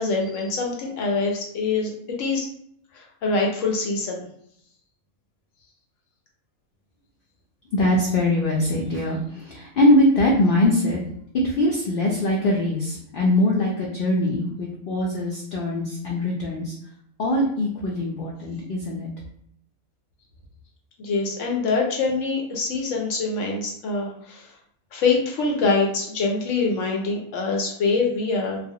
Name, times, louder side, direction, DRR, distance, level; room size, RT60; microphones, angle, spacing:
voice 1, 0.0-1.9 2.2-2.5 2.9-4.2 21.0-24.5 24.9-28.6, left 3 dB, 70° left, 0 dB, 0.8 m, -24 dB
voice 2, 7.7-11.0 11.4-16.7 17.2-19.1, left 1 dB, 85° left, -3 dB, 0.4 m, -22 dB
2.3 x 2.0 x 2.7 m, 0.68 s
omnidirectional pair, 1.5 m